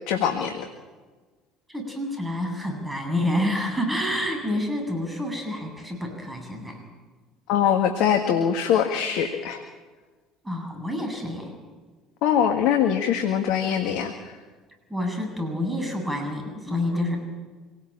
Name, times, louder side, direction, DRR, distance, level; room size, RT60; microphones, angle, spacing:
voice 1, 0.1-0.7 7.5-9.6 12.2-14.4, left 8 dB, 65° left, 6 dB, 1.8 m, -23 dB
voice 2, 1.7-6.8 10.4-11.6 14.9-17.2, left 1 dB, 10° right, 3 dB, 7.7 m, -28 dB
25.5 x 18.0 x 8.9 m, 1.4 s
hypercardioid pair, 60°, 0 cm